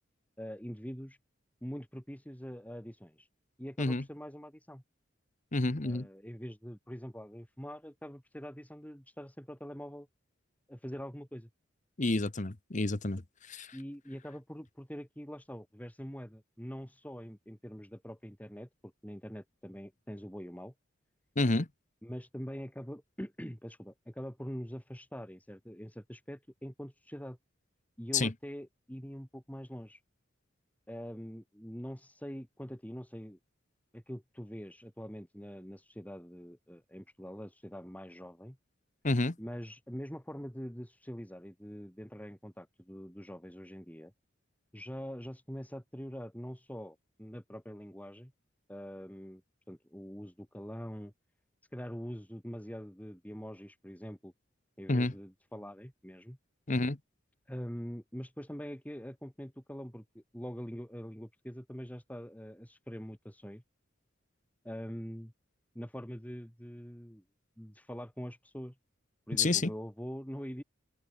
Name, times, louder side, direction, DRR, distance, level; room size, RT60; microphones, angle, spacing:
voice 1, 0.4-1.2 1.6-3.3 3.6-4.8 5.8-10.1 10.7-11.5 13.7-20.7 22.0-27.4 28.0-30.0 30.9-33.4 33.9-38.6 39.4-44.1 44.7-48.3 48.7-49.4 49.7-51.1 51.7-54.3 54.8-56.4 57.5-63.6 64.6-65.3 65.7-67.2 67.6-68.8 69.3-70.6, equal, 10° left, 6.0 m, -44 dB
voice 2, 5.5-6.1 12.0-13.2 13.5-13.7 21.4-21.7 28.1-28.3 39.0-39.3 54.9-55.1 56.7-57.0 69.4-69.7, left 2 dB, 40° left, 1.2 m, -29 dB
head